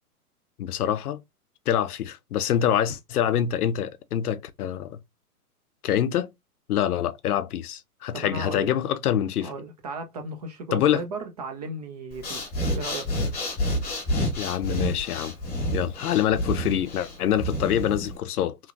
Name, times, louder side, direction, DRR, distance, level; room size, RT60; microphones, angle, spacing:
voice 1, 0.6-1.2 1.7-5.0 5.8-6.3 6.7-9.5 10.7-11.0 14.4-15.3 15.7-18.6, left 10 dB, 75° left, 0.5 m, -25 dB
voice 2, 8.1-8.8 9.4-12.5 12.7-13.1, right 2 dB, 30° right, 0.4 m, -35 dB
Breathing, 12.1-18.2, equal, 20° left, 1.0 m, -29 dB
3.0 x 2.2 x 2.5 m
hypercardioid pair, 120°, 46 cm